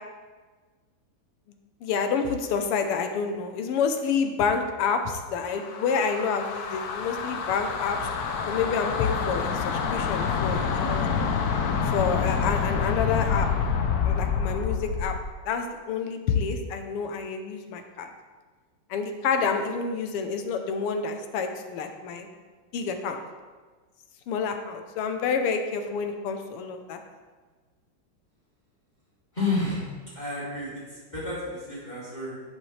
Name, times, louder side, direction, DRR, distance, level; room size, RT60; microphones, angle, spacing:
voice 1, 1.8-8.1 8.5-11.1 11.8-13.5 14.0-15.1 15.5-18.1 18.9-22.3 22.7-23.2 24.3-27.0, left 5 dB, 90° left, 6 dB, 1.8 m, -28 dB
sound 1, 5.5-15.3, left 6 dB, 65° left, 0.9 m, -27 dB
voice 2, 29.3-32.3, left 2 dB, 20° left, -9 dB, 3.1 m, -31 dB
11.0 x 8.4 x 3.3 m, 1.4 s
omnidirectional pair, 2.4 m